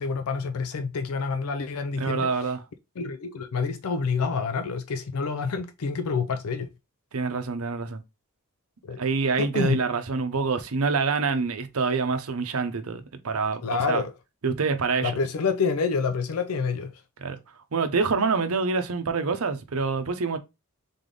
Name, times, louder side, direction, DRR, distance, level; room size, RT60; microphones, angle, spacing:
voice 1, 0.0-2.3 3.0-6.7 8.8-9.0 9.4-9.8 13.6-14.1 15.0-17.0, left 5 dB, 75° left, 0.5 m, -27 dB
voice 2, 2.0-2.6 7.1-8.0 9.0-13.6 13.9-14.0 14.4-15.1 17.2-17.4 17.7-20.4, right 4 dB, 75° right, 0.7 m, -26 dB
3.8 x 3.4 x 3.8 m
head